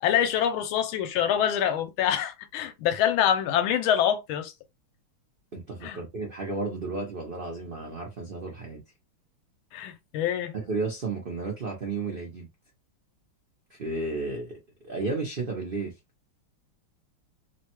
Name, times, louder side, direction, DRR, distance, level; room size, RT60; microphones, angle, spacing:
voice 1, 0.0-4.5 5.8-6.0 9.7-10.5, left 10 dB, 80° left, 1.4 m, -25 dB
voice 2, 5.5-8.8 10.5-12.5 13.8-15.9, right 3 dB, 80° right, 0.5 m, -33 dB
3.3 x 2.2 x 2.9 m
omnidirectional pair, 2.3 m